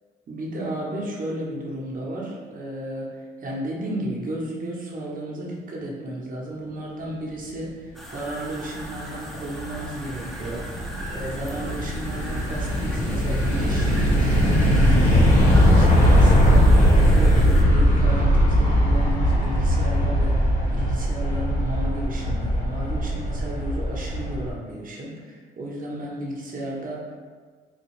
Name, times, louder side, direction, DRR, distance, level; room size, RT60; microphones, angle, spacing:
voice 1, 0.3-27.1, right 1 dB, 45° right, -4 dB, 1.0 m, -33 dB
sound 1, 7.9-17.6, equal, ahead, 0.6 m, -39 dB
sound 2, 9.0-24.5, equal, 40° left, 1.0 m, -20 dB
4.2 x 2.4 x 3.1 m, 1.5 s
cardioid pair, 90°, 20 cm